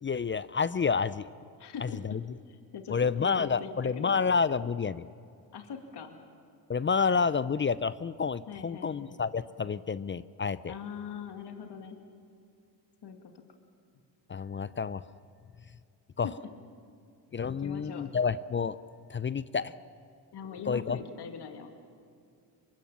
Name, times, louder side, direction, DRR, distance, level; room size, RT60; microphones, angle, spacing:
voice 1, 0.0-1.3 1.8-2.2 2.9-5.1 6.7-10.7 14.3-15.0 16.2-16.3 17.3-18.8 19.1-19.7 20.7-21.0, left 5 dB, 25° left, 17 dB, 0.6 m, -29 dB
voice 2, 1.6-2.0 2.5-4.3 5.5-6.2 8.5-9.2 10.7-12.0 13.0-13.3 17.4-18.1 19.6-19.7 20.3-21.7, left 7 dB, 55° left, 5 dB, 2.4 m, -42 dB
23.5 x 23.0 x 7.4 m, 2.4 s
supercardioid pair, 60°, 49 cm